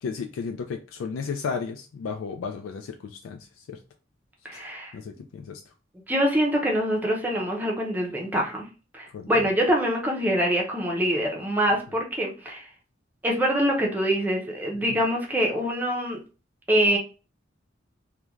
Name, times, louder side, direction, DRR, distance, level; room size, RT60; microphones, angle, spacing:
voice 1, 0.0-3.8 4.5-5.7 9.1-9.5 14.7-15.0, left 5 dB, 85° left, 0.3 m, -34 dB
voice 2, 4.4-4.9 6.1-8.6 8.9-12.7 13.2-16.2 16.7-17.0, equal, 10° right, 0.5 m, -24 dB
3.1 x 2.2 x 2.3 m
head